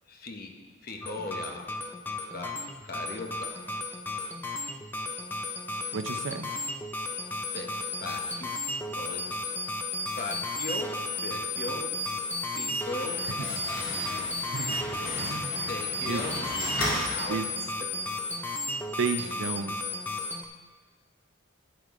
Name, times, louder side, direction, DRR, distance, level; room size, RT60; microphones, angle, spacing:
voice 1, 0.1-0.5 0.8-1.9 2.3-3.7 7.5-9.7 10.1-13.5 15.6-17.5 17.9-18.0, left 2 dB, 45° left, 3 dB, 1.0 m, -39 dB
sound 1, 1.0-20.5, left 2 dB, 10° left, 0.5 m, -34 dB
voice 2, 5.9-6.5 13.2-13.6 14.4-14.9 15.1-15.6 16.1-16.2 17.3-17.4 19.0-19.8, right 4 dB, 65° right, 9 dB, 0.5 m, -33 dB
Slam, 12.8-17.8, left 1 dB, 70° left, 2.6 m, -35 dB
11.0 x 9.0 x 3.7 m, 1.3 s
head